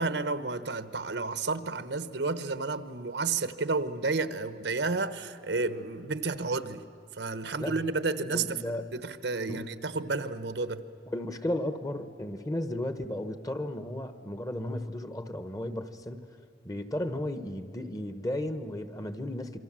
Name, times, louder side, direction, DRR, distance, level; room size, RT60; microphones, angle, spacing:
voice 1, 0.0-6.8 7.2-8.6 8.9-10.8, right 3 dB, 80° right, 1.1 m, -31 dB
voice 2, 8.3-8.8 9.5-9.6 11.1-16.2 16.6-19.6, left 1 dB, 20° left, 1.1 m, -34 dB
27.5 x 24.0 x 7.6 m
head